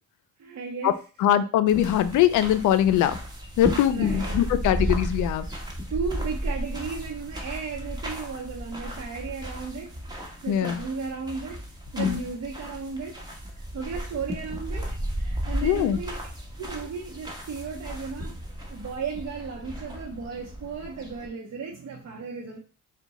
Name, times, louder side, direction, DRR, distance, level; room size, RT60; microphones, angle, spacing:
voice 1, 0.4-1.0 3.9-4.4 5.9-11.6 11.9-13.2 13.5-16.2 16.6-18.4 18.7-22.6, right 5 dB, 55° right, -3 dB, 0.8 m, -35 dB
voice 2, 1.2-3.1 3.6-5.5 10.5-10.8 12.0-12.2 15.6-16.0, left 11 dB, 80° left, 13 dB, 0.5 m, -22 dB
sound 1, 1.7-21.3, equal, 15° right, 1.2 m, -34 dB
4.6 x 2.2 x 4.0 m, 0.35 s
cardioid pair, 90°, 30 cm